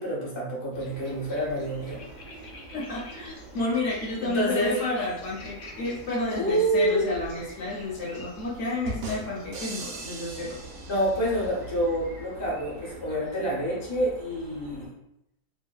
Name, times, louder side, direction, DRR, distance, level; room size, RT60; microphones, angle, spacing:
voice 1, 0.0-2.0 4.2-4.8 6.3-7.2 10.9-14.9, right 1 dB, 35° left, -5 dB, 0.5 m, -27 dB
sound 1, 0.7-10.0, left 2 dB, 90° left, 1.2 m, -49 dB
sound 2, 0.9-14.9, right 2 dB, 60° right, 0.9 m, -46 dB
voice 2, 2.7-10.6, left 2 dB, 60° left, -6 dB, 0.9 m, -31 dB
sound 3, 8.9-11.7, right 2 dB, 75° right, 0.6 m, -38 dB
2.6 x 2.4 x 2.2 m, 0.81 s
omnidirectional pair, 1.7 m